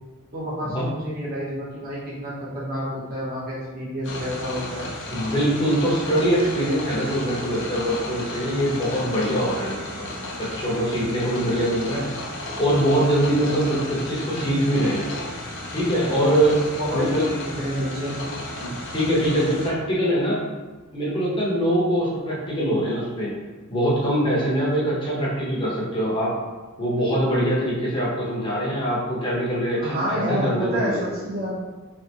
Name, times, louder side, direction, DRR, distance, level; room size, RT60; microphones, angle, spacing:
voice 1, 0.3-4.9 16.7-18.2 29.7-31.5, equal, 50° right, -8 dB, 1.4 m, -29 dB
sound 1, 4.0-19.7, left 1 dB, 60° left, 0.7 m, -34 dB
voice 2, 5.1-10.1 10.4-12.1 12.6-15.1 15.7-16.6 16.9-17.3 18.6-20.4 20.9-23.3 23.7-26.4 26.8-31.1, equal, 25° left, -6 dB, 1.1 m, -23 dB
3.5 x 3.4 x 2.9 m, 1.2 s
head